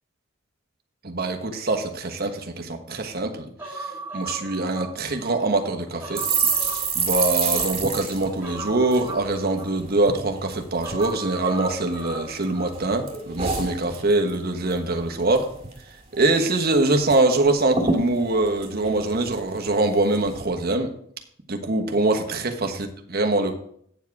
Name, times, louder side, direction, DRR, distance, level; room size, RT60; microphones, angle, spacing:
voice 1, 1.0-6.2 6.9-15.5 16.1-20.9 21.5-23.5, right 2 dB, 50° right, 4 dB, 1.3 m, -23 dB
Human voice, 3.6-5.4 5.8-7.8 8.4-10.2 10.8-12.8 13.0-13.2, right 2 dB, 10° right, 2.9 m, -37 dB
sound 1, 6.1-9.7 10.0-10.2 10.5-11.1 11.6-12.4 12.7-14.4 14.7-14.9 15.2-15.8 16.1-16.2 16.5-17.2 17.4-17.5 17.7-19.6 20.1-20.4, right 5 dB, 30° right, 1.9 m, -28 dB
9.2 x 7.3 x 4.7 m, 0.67 s
head